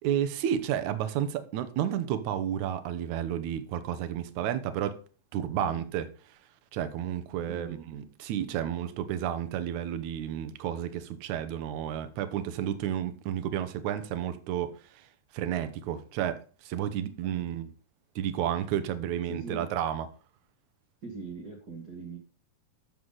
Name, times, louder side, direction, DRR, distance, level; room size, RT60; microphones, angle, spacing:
voice 1, 0.0-5.0 5.3-6.4 6.7-15.1 15.3-17.7 18.2-20.1, right 10 dB, 70° right, 2.2 m, -31 dB
voice 2, 7.5-7.8 17.2-17.5 19.3-19.7 21.0-22.2, right 4 dB, 40° right, 1.6 m, -41 dB
12.5 x 7.1 x 3.9 m
omnidirectional pair, 3.8 m